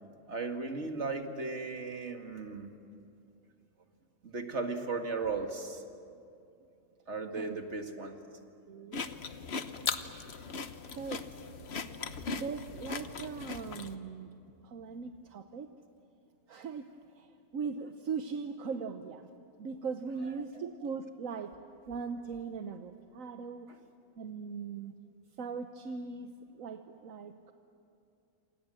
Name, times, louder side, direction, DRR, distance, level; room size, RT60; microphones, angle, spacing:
voice 1, 0.3-2.7 4.2-5.8 7.1-8.2 23.7-23.8, right 3 dB, 55° right, 4 dB, 2.3 m, -36 dB
voice 2, 8.6-9.1 9.9-10.2 10.9-11.2 12.3-15.7 16.5-19.3 19.6-21.6 21.9-23.7 24.2-24.9 25.4-27.5, right 5 dB, 75° right, 7 dB, 1.4 m, -40 dB
sound 1, 8.9-13.9, left 5 dB, 50° left, 1.2 m, -38 dB
27.5 x 27.5 x 7.8 m, 2.6 s
omnidirectional pair, 1.4 m